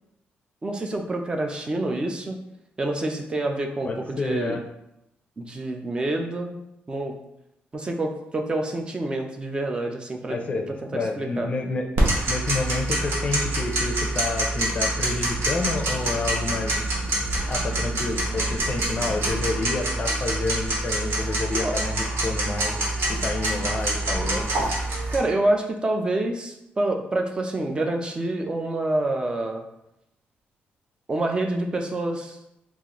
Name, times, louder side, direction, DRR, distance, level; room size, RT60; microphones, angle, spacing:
voice 1, 0.6-2.4 2.8-4.6 5.4-6.5 6.9-7.1 7.7-10.4 11.2-11.5 21.5-21.8 25.1-29.6 31.1-32.4, right 2 dB, 25° right, 3 dB, 0.4 m, -27 dB
voice 2, 3.8-4.6 10.3-11.9 12.3-16.8 17.5-22.7 23.1-24.5, left 3 dB, 35° left, 3 dB, 0.5 m, -29 dB
Tick-tock, 12.0-25.2, right 1 dB, 75° right, 0.8 m, -26 dB
3.8 x 2.4 x 2.9 m, 0.83 s
cardioid pair, 125°, 4 cm